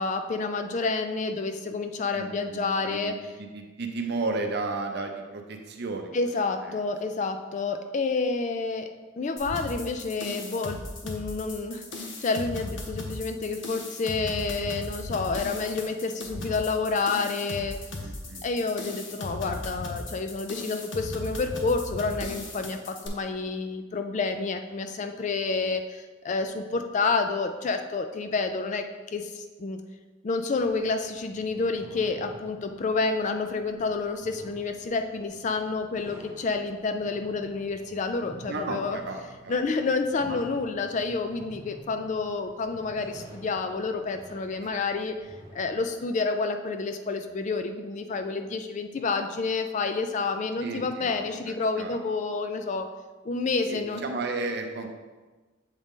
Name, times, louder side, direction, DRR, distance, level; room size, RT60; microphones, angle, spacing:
voice 1, 0.0-3.2 6.1-17.8 18.4-29.8 30.2-39.0 39.5-45.2 45.5-52.9 53.2-54.0, left 4 dB, 35° left, 7 dB, 0.3 m, -29 dB
voice 2, 2.1-6.2 6.6-6.8 18.0-18.7 38.5-39.6 40.2-40.4 44.6-44.7 50.6-52.0 53.7-54.9, right 3 dB, 50° right, 4 dB, 0.6 m, -34 dB
sound 1, 9.4-23.1, left 2 dB, 60° left, 0.8 m, -37 dB
sound 2, 30.5-45.9, equal, 30° right, 1.5 m, -50 dB
7.2 x 3.8 x 3.6 m, 1.3 s
head